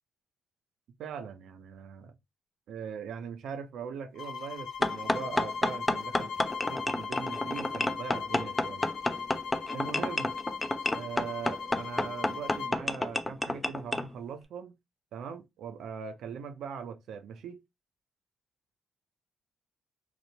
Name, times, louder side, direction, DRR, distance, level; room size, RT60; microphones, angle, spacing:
voice 1, 1.0-2.2 2.7-6.3 6.7-8.9 9.7-10.3 10.9-14.8 15.1-17.6, right 6 dB, 75° right, 0.5 m, -41 dB
sound 1, 4.2-12.8, left 5 dB, 80° left, 0.7 m, -38 dB
sound 2, 4.8-14.1, left 2 dB, 15° left, 0.3 m, -30 dB
3.0 x 2.1 x 2.8 m
cardioid pair, 90°, 0 cm